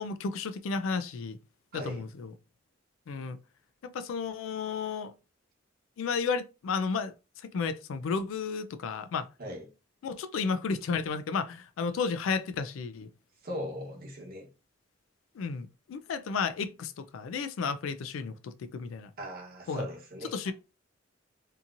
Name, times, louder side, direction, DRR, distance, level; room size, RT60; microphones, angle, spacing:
voice 1, 0.0-1.4 1.7-2.3 3.1-3.4 3.8-5.1 6.0-9.3 10.0-13.1 15.3-19.1 19.7-19.8 20.3-20.5, left 5 dB, 85° left, 0.3 m, -33 dB
voice 2, 1.7-2.1 9.4-9.7 13.4-14.5 19.2-20.5, equal, 50° right, 1.0 m, -39 dB
2.8 x 2.6 x 2.5 m
head